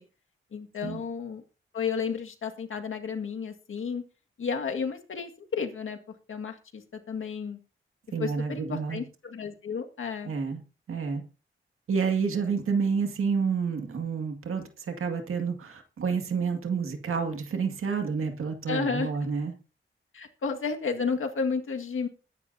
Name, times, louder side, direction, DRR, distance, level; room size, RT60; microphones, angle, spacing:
voice 1, 0.5-1.4 1.7-4.0 4.4-6.0 6.3-7.6 8.2-10.3 18.7-19.3 20.1-22.1, left 5 dB, 75° left, 4 dB, 1.9 m, -32 dB
voice 2, 8.1-9.0 10.2-10.6 10.9-11.2 11.9-19.5, right 5 dB, 85° right, 5 dB, 2.1 m, -29 dB
21.5 x 11.0 x 2.7 m, 0.34 s
wide cardioid pair, 115°, 21 cm